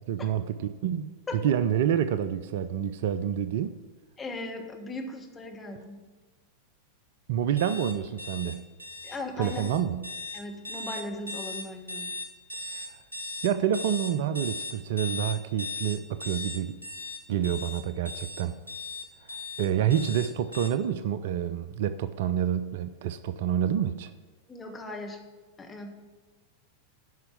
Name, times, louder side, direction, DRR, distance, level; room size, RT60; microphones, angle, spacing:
voice 1, 0.1-3.8 7.3-8.6 9.4-10.1 12.6-12.9 13.4-16.8 17.3-18.6 19.6-24.1, right 9 dB, 55° right, 0.4 m, -28 dB
voice 2, 4.2-6.0 9.0-9.6 10.3-12.1 24.5-25.2 25.6-25.9, left 2 dB, 15° left, 1.5 m, -38 dB
sound 1, 7.6-20.7, left 3 dB, 80° right, 1.3 m, -38 dB
9.3 x 5.6 x 7.3 m
figure-of-eight pair, 90°, 0 cm